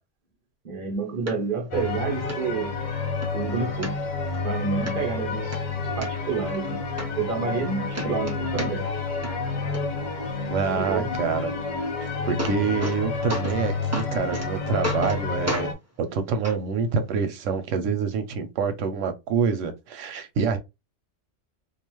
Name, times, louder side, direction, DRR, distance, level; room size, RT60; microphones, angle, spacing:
voice 1, 0.6-2.7 3.3-4.0 4.4-5.6 6.0-6.8 7.2-8.9 10.7-11.1, right 5 dB, 50° right, 0.9 m, -29 dB
sound 1, 1.3-1.4 1.8-1.9 2.3-2.4 2.8-3.3 3.8-4.4 4.9-5.0 5.3-6.1 6.6-6.7 7.0-7.7 7.9-9.0 9.2-9.8 11.8-11.9 12.2-13.0 13.3-13.6 13.9-14.5 14.8-15.2 15.5-15.7 16.4-16.6 17.5-17.6, equal, 20° right, 0.5 m, -32 dB
sound 2, 1.7-15.7, left 4 dB, 50° left, 0.6 m, -29 dB
voice 2, 10.5-11.5 12.0-15.7 16.0-20.6, right 5 dB, 85° right, 0.9 m, -26 dB
2.4 x 2.3 x 3.0 m
omnidirectional pair, 1.3 m